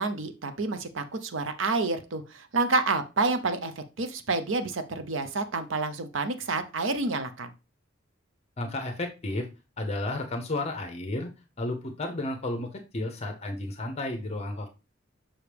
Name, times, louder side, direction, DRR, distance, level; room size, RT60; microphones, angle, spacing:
voice 1, 0.0-7.5, right 3 dB, 80° right, 10 dB, 0.7 m, -29 dB
voice 2, 8.6-9.5 9.8-11.3 11.6-14.7, left 2 dB, 35° left, 4 dB, 0.8 m, -32 dB
5.8 x 4.9 x 3.4 m, 0.29 s
head